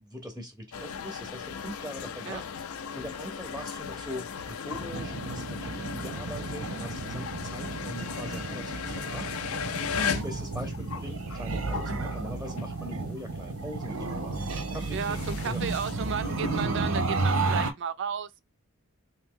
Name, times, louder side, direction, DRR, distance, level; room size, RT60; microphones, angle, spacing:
voice 1, 0.0-2.7 2.9-9.6 10.2-15.6, equal, 5° right, 0.6 m, -42 dB
sound 1, 0.7-13.0 13.3-16.7, left 7 dB, 75° left, 0.4 m, -37 dB
sound 2, 4.7-17.7, right 3 dB, 85° right, 0.9 m, -32 dB
voice 2, 14.9-18.4, right 6 dB, 60° right, 0.4 m, -33 dB
3.0 x 2.7 x 3.6 m
head